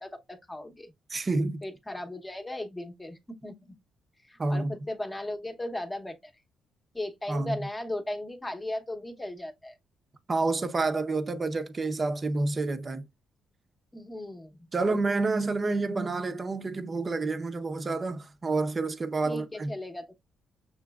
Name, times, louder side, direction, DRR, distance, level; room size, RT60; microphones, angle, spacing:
voice 1, 0.0-0.9 1.6-3.7 4.3-6.3 6.9-9.7 13.9-14.6 19.2-20.1, left 1 dB, 15° left, 0.9 m, -37 dB
voice 2, 1.1-1.6 4.4-4.7 7.3-7.7 10.3-13.1 14.7-19.7, right 3 dB, 30° right, 0.7 m, -29 dB
6.5 x 3.0 x 2.3 m
cardioid pair, 90°, 0 cm